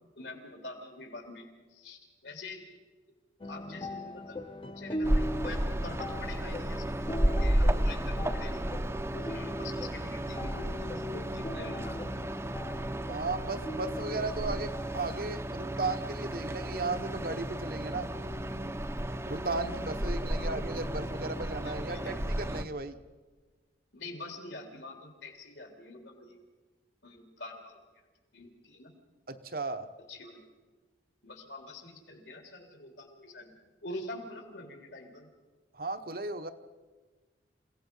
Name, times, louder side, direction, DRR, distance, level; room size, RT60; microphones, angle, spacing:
voice 1, 0.2-2.7 3.5-8.6 9.1-12.3 20.4-20.5 21.3-22.2 23.9-26.4 27.0-27.8 28.3-29.0 30.1-30.5 31.2-35.3, left 2 dB, 75° left, 3 dB, 3.7 m, -45 dB
sound 1, 3.4-15.2, left 1 dB, 30° left, 0.8 m, -41 dB
sound 2, 5.0-22.6, right 1 dB, 15° right, 0.7 m, -33 dB
voice 2, 13.1-18.1 19.2-23.0 29.3-29.9 35.7-36.5, right 3 dB, 50° right, 8 dB, 1.0 m, -35 dB
28.5 x 17.0 x 5.5 m, 1.3 s
head